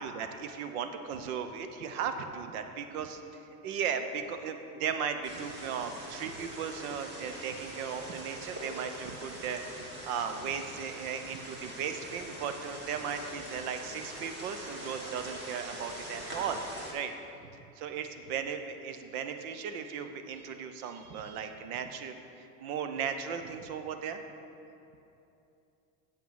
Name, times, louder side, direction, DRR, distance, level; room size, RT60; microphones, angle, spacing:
voice 1, 0.0-16.6 16.9-17.1 17.8-22.1 22.6-24.2, right 7 dB, 65° right, 8 dB, 0.9 m, -36 dB
sound 1, 5.2-16.9, right 1 dB, 25° right, 1.8 m, -43 dB
7.8 x 5.8 x 5.8 m, 2.8 s
supercardioid pair, 115°, 46 cm